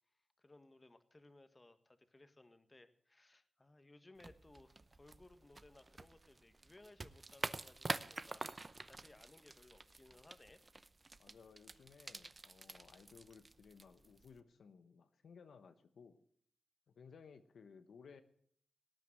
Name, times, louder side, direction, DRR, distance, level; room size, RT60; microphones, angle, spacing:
voice 1, 0.4-10.9, left 2 dB, 25° left, 10 dB, 1.6 m, -63 dB
sound 1, 4.2-14.4, right 3 dB, 30° right, 0.7 m, -48 dB
voice 2, 11.2-16.2 16.9-18.2, left 5 dB, 80° left, 9 dB, 1.0 m, -59 dB
18.5 x 9.2 x 7.7 m, 0.63 s
cardioid pair, 75°, 0 cm